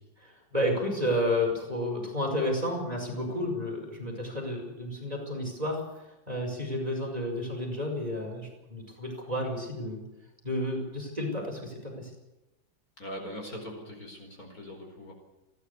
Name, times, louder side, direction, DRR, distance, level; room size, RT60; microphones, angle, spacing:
voice 1, 0.2-10.1 10.4-12.1, left 1 dB, 20° right, 0 dB, 5.4 m, -31 dB
voice 2, 13.0-15.1, equal, 50° left, 3 dB, 5.3 m, -41 dB
29.5 x 11.5 x 8.3 m, 1.0 s
omnidirectional pair, 2.0 m